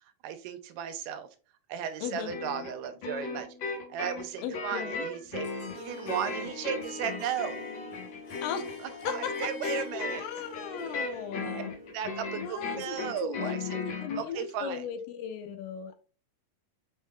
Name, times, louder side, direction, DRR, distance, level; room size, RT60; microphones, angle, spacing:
voice 1, 0.2-1.3 1.7-3.5 3.9-5.5 5.8-7.6 9.1-10.2 11.5-11.6 11.9-13.8 14.2-14.9, right 8 dB, 80° right, 2.1 m, -35 dB
voice 2, 2.0-2.3 4.4-5.0 8.4-11.7 12.4-16.0, left 7 dB, 90° left, 2.3 m, -37 dB
sound 1, 2.3-14.2, left 4 dB, 75° left, 1.1 m, -36 dB
Harp, 5.4-13.9, left 3 dB, 55° left, 2.3 m, -45 dB
5.2 x 3.7 x 2.2 m
omnidirectional pair, 3.9 m